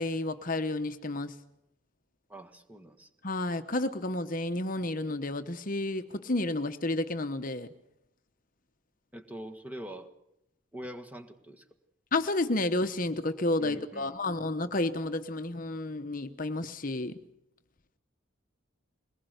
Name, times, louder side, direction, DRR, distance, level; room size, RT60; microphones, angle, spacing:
voice 1, 0.0-1.3 3.2-7.7 12.1-17.1, left 2 dB, 40° left, 8 dB, 1.0 m, -31 dB
voice 2, 2.3-3.1 9.1-10.1 10.7-11.6 13.6-14.4, right 1 dB, 5° right, 4 dB, 1.7 m, -44 dB
22.5 x 19.5 x 8.0 m, 0.82 s
head